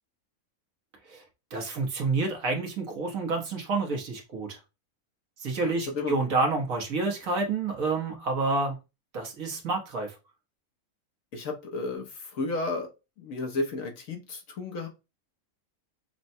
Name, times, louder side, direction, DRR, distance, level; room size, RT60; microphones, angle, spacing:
voice 1, 1.5-4.6 5.4-8.8 9.1-10.1, right 3 dB, 65° right, 1.4 m, -29 dB
voice 2, 5.5-6.2 11.3-12.9 13.2-14.9, left 3 dB, 65° left, 1.2 m, -33 dB
6.1 x 2.2 x 2.7 m
omnidirectional pair, 1.6 m